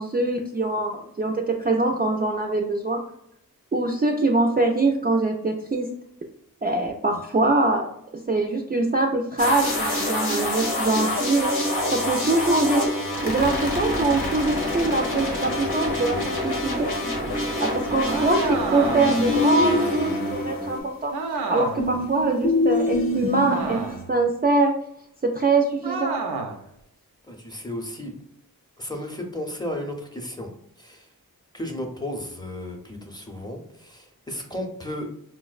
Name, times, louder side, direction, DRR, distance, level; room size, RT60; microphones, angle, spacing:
voice 1, 0.0-3.0 3.7-5.9 6.6-7.9 8.3-12.8 13.2-16.9 17.2-21.1 21.5-23.8 24.1-24.7 25.2-26.1, right 2 dB, 25° right, 2 dB, 0.3 m, -23 dB
sound 1, 9.4-20.8, left 1 dB, 85° left, 0.9 m, -27 dB
sound 2, 18.1-19.3 21.1-21.9 23.5-24.2 25.8-26.6, right 4 dB, 90° right, 0.5 m, -30 dB
sound 3, 19.3-20.5 21.8-24.0, left 2 dB, 65° left, 0.6 m, -24 dB
voice 2, 27.3-28.1 28.8-30.5 30.8-31.1 31.5-35.1, left 1 dB, 10° left, 2 dB, 0.6 m, -34 dB
4.4 x 2.0 x 2.3 m, 0.75 s
wide cardioid pair, 40°, 37 cm